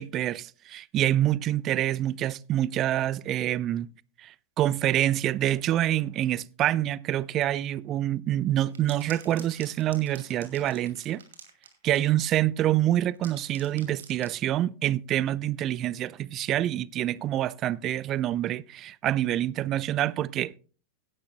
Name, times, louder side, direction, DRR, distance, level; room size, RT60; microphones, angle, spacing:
voice 1, 0.0-3.9 4.2-11.2 11.8-20.6, right 13 dB, 35° right, 0.4 m, -26 dB
sound 1, 8.5-12.2 12.9-14.4, right 7 dB, 65° right, 2.3 m, -48 dB
17.0 x 11.0 x 2.2 m
figure-of-eight pair, 90°, 0 cm